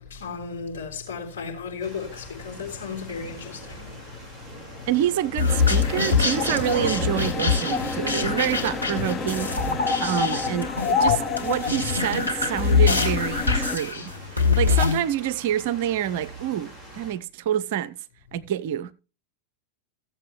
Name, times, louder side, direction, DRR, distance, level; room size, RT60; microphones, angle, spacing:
voice 1, 0.0-4.0, left 5 dB, 65° left, 3.7 m, -35 dB
sound 1, 1.8-17.1, equal, ahead, 4.4 m, -38 dB
voice 2, 4.9-9.5 10.0-18.0 18.3-18.9, right 11 dB, 50° right, 0.6 m, -27 dB
sound 2, 5.4-15.0, left 5 dB, 85° left, 2.1 m, -23 dB
sound 3, 5.5-13.8, left 5 dB, 25° left, 0.7 m, -33 dB
15.0 x 7.6 x 3.1 m
figure-of-eight pair, 90°, 0 cm